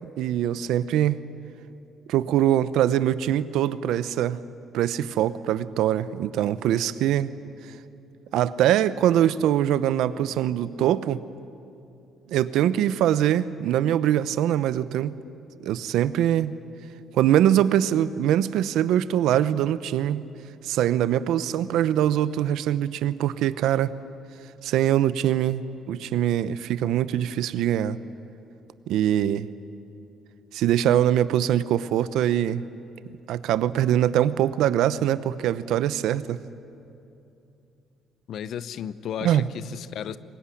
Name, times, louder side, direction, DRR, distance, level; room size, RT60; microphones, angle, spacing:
voice 1, 0.2-1.2 2.1-4.4 4.7-7.3 8.3-11.2 12.3-15.1 15.6-16.5 17.1-20.2 20.6-23.9 24.6-28.0 28.9-29.5 30.5-32.6 33.3-36.4 39.2-39.4, right 11 dB, 80° right, 15 dB, 0.8 m, -23 dB
voice 2, 38.3-40.2, left 9 dB, 70° left, 15 dB, 0.8 m, -34 dB
23.5 x 21.0 x 10.0 m, 2.7 s
cardioid pair, 95°, 0 cm